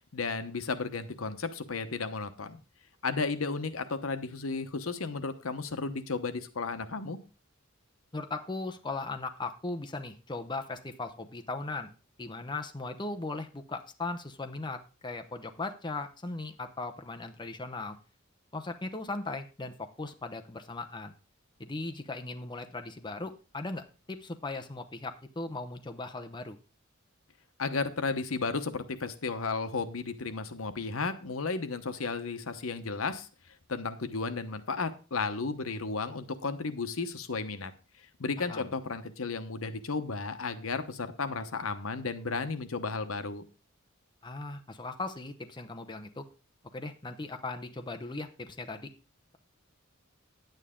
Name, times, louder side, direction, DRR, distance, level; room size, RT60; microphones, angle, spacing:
voice 1, 0.1-2.6 3.0-7.2 27.6-33.3 33.7-37.7 38.2-43.4, left 4 dB, 85° left, 10 dB, 1.0 m, -33 dB
voice 2, 8.1-11.9 12.2-18.0 18.5-21.1 21.6-26.6 38.4-38.7 44.2-46.3 46.7-48.9, left 3 dB, 20° left, 6 dB, 0.8 m, -38 dB
9.9 x 9.1 x 3.7 m, 0.33 s
head